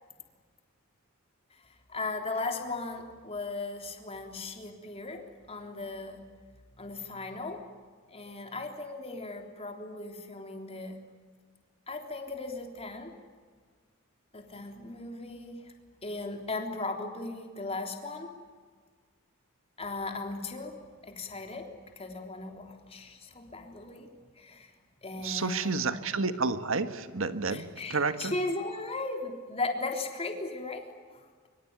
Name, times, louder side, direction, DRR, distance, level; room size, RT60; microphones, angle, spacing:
voice 1, 1.9-6.2 6.8-7.6 8.1-11.0 11.9-13.1 14.3-15.7 16.0-18.3 19.8-20.8 21.0-21.7 22.0-24.1 24.4-24.7 25.0-26.0 27.5-31.2, left 3 dB, 30° left, 3 dB, 3.6 m, -37 dB
voice 2, 25.2-28.3, right 4 dB, 65° right, 10 dB, 1.6 m, -30 dB
25.0 x 24.5 x 9.6 m, 1.5 s
head